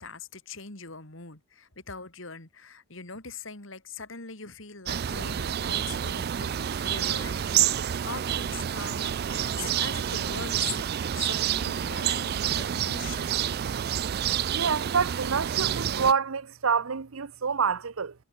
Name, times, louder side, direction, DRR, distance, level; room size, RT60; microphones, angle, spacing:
voice 1, 0.0-13.4, left 5 dB, 60° left, 3.0 m, -41 dB
sound 1, 4.9-16.1, right 10 dB, 45° right, 0.3 m, -28 dB
voice 2, 14.5-18.1, right 6 dB, 75° right, 0.8 m, -27 dB
head